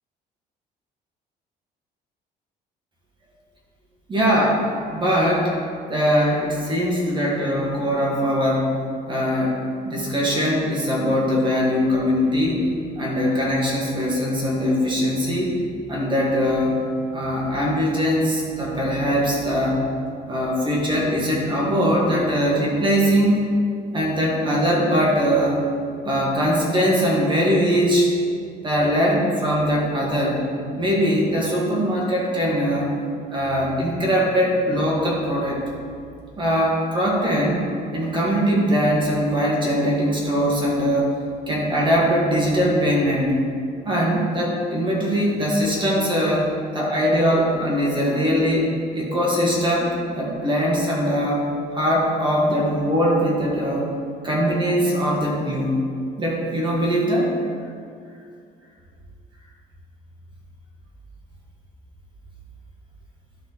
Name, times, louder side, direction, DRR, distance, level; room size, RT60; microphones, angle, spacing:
voice 1, 4.1-5.5 5.9-8.7 9.1-9.6 9.8-12.6 13.0-15.6 15.9-16.8 17.1-19.8 20.3-23.4 23.9-25.7 26.1-28.1 28.6-30.4 30.8-33.0 33.3-35.6 36.4-37.6 37.9-41.2 41.5-43.4 43.8-51.5 51.7-53.9 54.2-55.8 56.2-57.3, equal, 30° right, -4 dB, 1.8 m, -21 dB
11.5 x 4.2 x 4.1 m, 2.3 s
cardioid pair, 110°, 17 cm